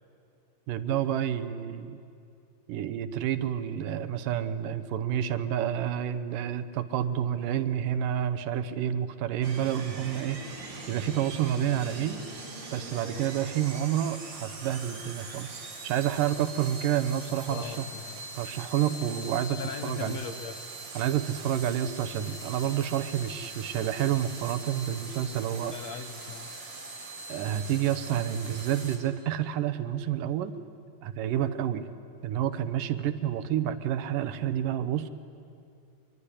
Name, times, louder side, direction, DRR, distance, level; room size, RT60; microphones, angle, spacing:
voice 1, 0.7-2.0 2.7-12.2 12.7-17.9 18.4-20.2 21.0-25.7 27.3-30.5 31.0-31.8 32.2-35.1, right 10 dB, 75° right, 12 dB, 2.5 m, -29 dB
sound 1, 9.4-29.0, right 2 dB, 35° right, 3.3 m, -42 dB
voice 2, 17.5-18.3 19.6-20.6 25.7-26.5, left 7 dB, 70° left, 8 dB, 1.7 m, -39 dB
25.0 x 23.5 x 10.0 m, 2.5 s
omnidirectional pair, 3.9 m